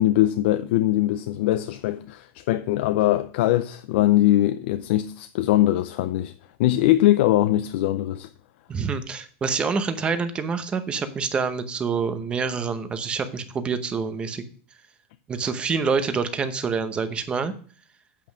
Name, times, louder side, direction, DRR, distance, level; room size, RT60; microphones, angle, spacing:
voice 1, 0.0-6.3 6.6-8.3, left 14 dB, 60° left, 0.5 m, -21 dB
voice 2, 8.7-14.4 15.3-17.5, right 5 dB, 15° right, 0.8 m, -26 dB
8.5 x 5.4 x 6.0 m
supercardioid pair, 165°, 7 cm